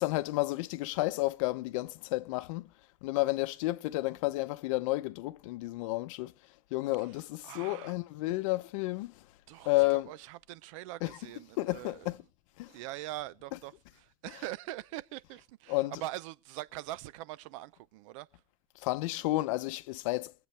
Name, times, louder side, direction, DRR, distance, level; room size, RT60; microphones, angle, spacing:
voice 1, 0.0-2.7 3.0-6.3 6.7-9.3 9.6-10.1 11.0-11.2 11.6-12.2 12.6-12.8 15.7-16.0 18.7-20.3, left 20 dB, 80° left, 0.8 m, -31 dB
voice 2, 7.4-7.9 9.5-12.1 12.7-18.3, right 16 dB, 80° right, 0.6 m, -43 dB
23.5 x 7.9 x 3.3 m
supercardioid pair, 145°, 16 cm